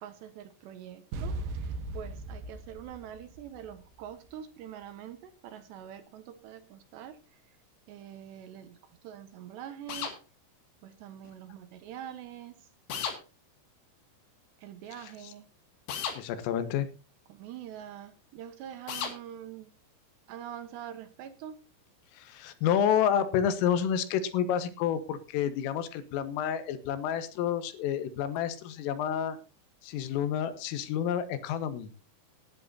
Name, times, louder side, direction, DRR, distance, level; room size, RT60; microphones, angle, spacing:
voice 1, 0.0-7.2 7.9-8.8 9.0-10.2 10.8-12.5 14.6-15.5 17.3-19.7 20.3-21.6, right 10 dB, 70° right, 10 dB, 3.0 m, -44 dB
sound 1, 1.1-4.1, right 2 dB, 90° right, 2.0 m, -38 dB
sound 2, 9.9-10.2 12.9-13.2 15.9-16.2 18.9-19.2, left 7 dB, 60° left, 4.1 m, -33 dB
voice 2, 16.2-16.9 22.2-29.4 29.8-31.9, left 9 dB, 85° left, 12 dB, 4.0 m, -29 dB
18.5 x 11.0 x 2.8 m, 0.31 s
omnidirectional pair, 5.7 m